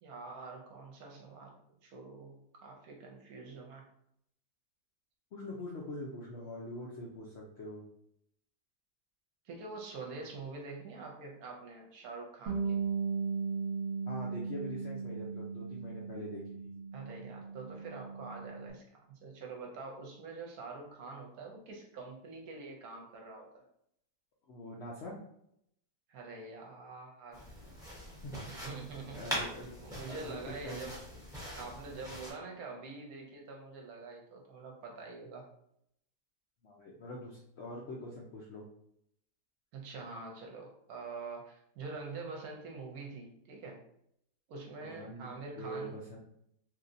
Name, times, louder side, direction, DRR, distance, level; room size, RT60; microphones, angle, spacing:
voice 1, 0.0-3.8 9.4-12.8 16.9-23.6 26.1-27.5 28.5-29.4 29.8-31.0 31.6-35.5 39.7-43.8 44.5-46.0, right 3 dB, 70° right, 1 dB, 1.0 m, -45 dB
voice 2, 5.3-7.8 14.1-16.4 24.5-25.2 28.2-28.3 29.1-29.7 30.1-30.8 36.6-38.6 44.8-46.2, left 1 dB, 80° left, -3 dB, 0.6 m, -44 dB
Bass guitar, 12.5-18.7, right 5 dB, 30° right, 1.0 m, -37 dB
sound 1, 27.3-32.3, equal, 5° right, 0.4 m, -42 dB
3.1 x 2.7 x 2.5 m, 0.74 s
omnidirectional pair, 1.8 m